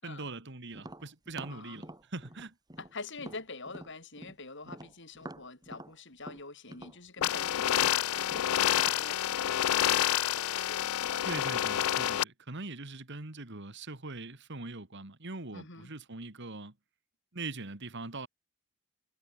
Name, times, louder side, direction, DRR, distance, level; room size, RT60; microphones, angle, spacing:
voice 1, 0.0-2.5 11.2-16.7 17.3-18.3, right 3 dB, 55° right, 2.1 m, -42 dB
Tap, 0.7-4.4 4.7-9.1, right 1 dB, 20° right, 2.6 m, -47 dB
voice 2, 2.8-11.3 15.5-15.9, left 3 dB, 55° left, 6.5 m, -46 dB
sound 1, 7.2-12.2, left 12 dB, 70° left, 0.4 m, -28 dB
head